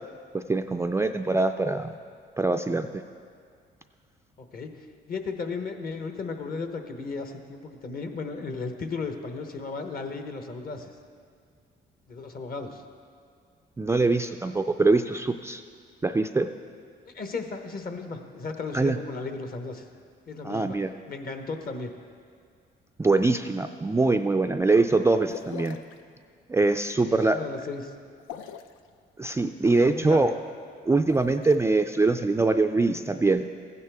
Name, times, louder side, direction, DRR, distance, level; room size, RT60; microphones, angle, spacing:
voice 1, 0.3-1.9 2.4-2.9 13.8-15.6 16.0-16.5 18.7-19.0 20.4-20.9 23.0-25.8 26.5-27.4 29.2-30.3 30.9-33.4, right 3 dB, 15° right, 6 dB, 0.3 m, -23 dB
voice 2, 4.4-10.9 12.1-12.8 17.1-19.9 20.3-20.8 21.1-21.9 27.0-27.9 29.4-29.6 29.8-30.3, left 4 dB, 45° left, 6 dB, 1.0 m, -35 dB
sound 1, 25.3-26.0 28.2-28.8 30.9-31.6, left 8 dB, 90° left, 0.5 m, -41 dB
15.0 x 9.6 x 3.5 m, 2.2 s
cardioid pair, 90°, 20 cm